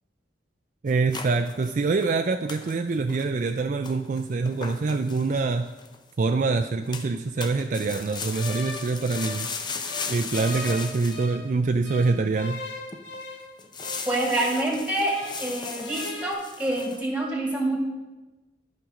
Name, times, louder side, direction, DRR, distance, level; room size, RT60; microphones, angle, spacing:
voice 1, 0.8-5.7 6.2-9.5 10.1-12.6, right 3 dB, 45° right, 7 dB, 0.4 m, -25 dB
sound 1, 0.9-2.2 2.5-2.8 3.1-3.5 3.8-6.0 6.9-7.1 7.4-11.3 11.8-11.9 12.5-12.6 12.9-13.2 13.6-17.0, left 5 dB, 25° left, 0.6 m, -37 dB
sound 2, 8.3-11.5 11.8-15.5 15.8-16.3, left 2 dB, 85° left, 1.4 m, -39 dB
voice 2, 14.1-17.8, right 1 dB, 5° right, -1 dB, 2.0 m, -27 dB
11.5 x 5.1 x 6.3 m, 1.1 s
head